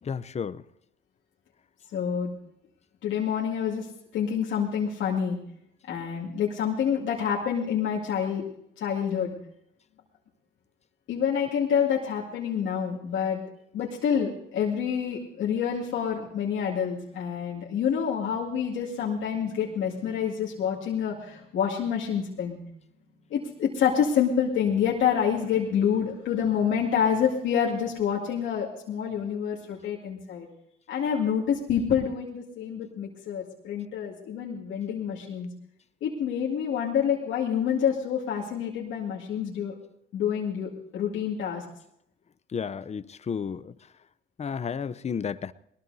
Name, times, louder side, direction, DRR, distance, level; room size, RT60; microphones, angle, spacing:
voice 1, 0.0-0.6 42.5-43.7 44.4-45.5, left 6 dB, 35° left, 16 dB, 0.6 m, -32 dB
voice 2, 1.9-2.3 3.0-3.9 4.1-5.4 5.9-8.4 8.8-9.3 11.1-13.4 13.7-22.6 23.3-30.5 30.9-35.5 36.0-39.7 40.1-41.6, left 8 dB, 85° left, -5 dB, 2.3 m, -27 dB
21.0 x 19.5 x 2.8 m, 0.75 s
cardioid pair, 90°, 20 cm